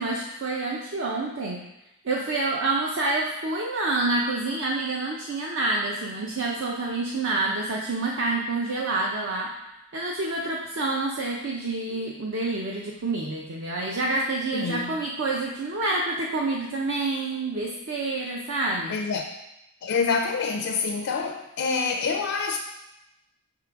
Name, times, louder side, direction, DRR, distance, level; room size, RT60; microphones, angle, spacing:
voice 1, 0.0-1.6 2.0-9.5 9.9-18.9, right 2 dB, 55° right, -2 dB, 0.6 m, -28 dB
voice 2, 14.5-15.0 18.9-19.3 19.8-22.6, left 5 dB, 55° left, 5 dB, 0.4 m, -27 dB
5.7 x 3.7 x 4.5 m, 0.89 s
head